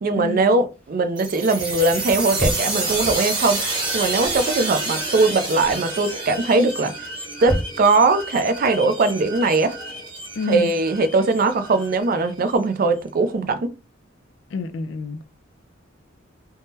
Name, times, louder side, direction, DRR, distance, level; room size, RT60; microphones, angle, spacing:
voice 1, 0.0-3.6 3.9-6.9 7.4-9.8 10.5-13.7, right 3 dB, 45° right, 0.4 m, -20 dB
sound 1, 0.7-3.4 4.2-4.5 4.8-5.1 5.5-5.9 6.7-8.2 9.9-10.0 10.4-10.5 11.6-12.1 12.4-12.5 12.8-13.0, equal, 10° left, 0.7 m, -32 dB
sound 2, 1.2-12.6, right 2 dB, 25° right, 0.9 m, -29 dB
voice 2, 10.4-10.7 14.5-15.2, left 3 dB, 65° left, 0.4 m, -28 dB
3.5 x 2.1 x 2.7 m
head